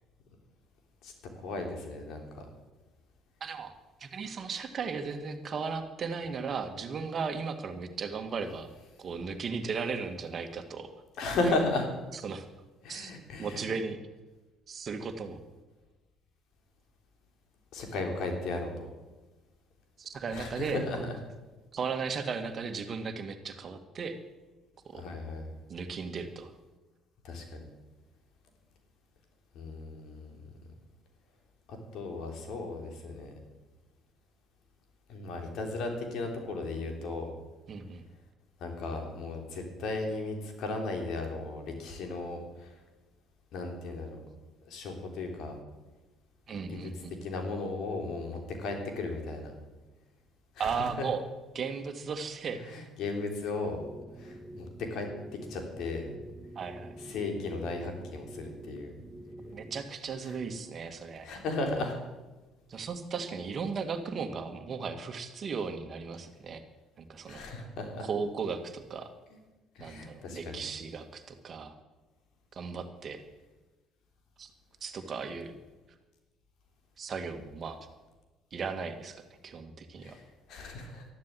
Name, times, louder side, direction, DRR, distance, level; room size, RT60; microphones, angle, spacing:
voice 1, 1.4-2.2 11.2-11.9 12.8-13.6 17.7-18.9 20.3-21.2 24.9-25.5 27.2-27.6 29.5-30.4 31.7-33.3 35.1-37.3 38.6-42.8 43.5-44.2 44.7-45.6 46.7-46.9 47.2-49.5 50.5-51.1 52.6-53.8 54.2-55.1 55.5-56.1 57.0-58.9 61.2-62.0 67.3-68.1 69.7-70.6 80.0-80.2 80.5-81.1, left 2 dB, 65° left, 3 dB, 3.4 m, -35 dB
voice 2, 3.4-3.7 4.0-8.7 9.0-10.9 11.4-11.6 12.2-12.4 12.9-13.1 13.4-14.0 14.7-15.4 20.0-21.1 21.7-24.2 24.9-25.0 25.7-26.5 37.7-38.1 46.5-47.2 50.6-51.2 51.5-52.9 56.5-56.9 59.5-61.3 62.7-66.6 67.0-67.4 68.0-69.1 69.8-71.7 72.5-73.2 74.4-74.5 74.8-75.5 77.0-77.9 78.5-79.2 79.4-80.2, right 5 dB, 45° right, 7 dB, 1.8 m, -36 dB
sound 1, 53.8-59.8, right 1 dB, 15° right, 2.6 m, -47 dB
13.0 x 11.5 x 7.7 m, 1.2 s
hypercardioid pair, 60°, 0 cm